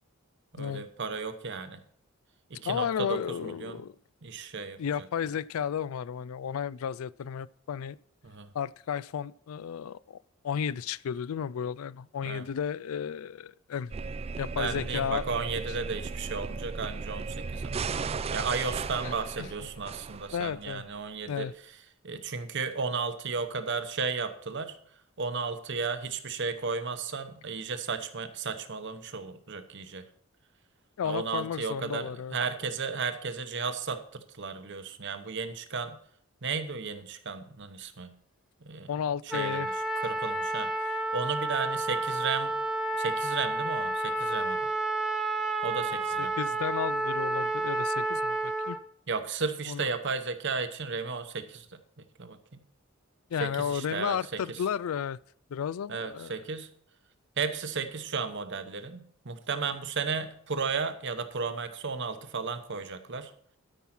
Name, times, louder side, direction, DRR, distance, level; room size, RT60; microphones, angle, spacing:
voice 1, 0.5-1.8 2.5-3.8 4.2-4.8 8.2-8.5 12.2-12.4 14.6-17.8 18.3-21.5 22.0-24.8 25.2-30.0 31.0-36.0 36.4-38.2 38.6-38.9 39.3-39.7 40.0-42.5 43.0-44.7 45.6-46.3 49.1-51.8 52.2-52.6 53.4-54.6 55.9-56.7 57.4-63.3, right 5 dB, 55° right, 0.9 m, -34 dB
voice 2, 2.6-4.0 4.8-8.0 8.5-10.2 10.4-13.9 14.4-15.3 19.0-19.1 19.4-19.5 20.3-20.8 21.3-21.5 31.0-32.4 38.9-39.7 46.2-48.8 49.7-49.9 53.3-55.2 55.5-56.3, left 8 dB, 80° left, 0.3 m, -33 dB
sound 1, 13.9-20.7, right 4 dB, 30° right, 0.3 m, -36 dB
Trumpet, 39.3-48.8, right 2 dB, ahead, 0.8 m, -30 dB
13.0 x 5.5 x 5.9 m
head